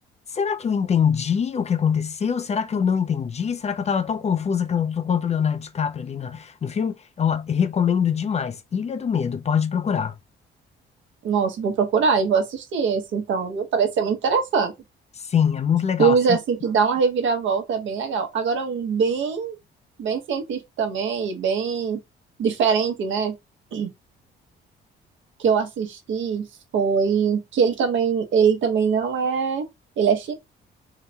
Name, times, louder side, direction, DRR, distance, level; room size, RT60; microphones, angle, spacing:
voice 1, 0.3-10.2 15.2-16.4, left 7 dB, 35° left, 0.4 m, -24 dB
voice 2, 11.2-14.7 16.0-19.6 20.0-22.0 22.4-23.4 23.7-23.9 25.4-26.5 26.7-29.7 30.0-30.3, right 6 dB, 70° right, 0.9 m, -22 dB
3.8 x 2.2 x 2.7 m
cardioid pair, 90°, 20 cm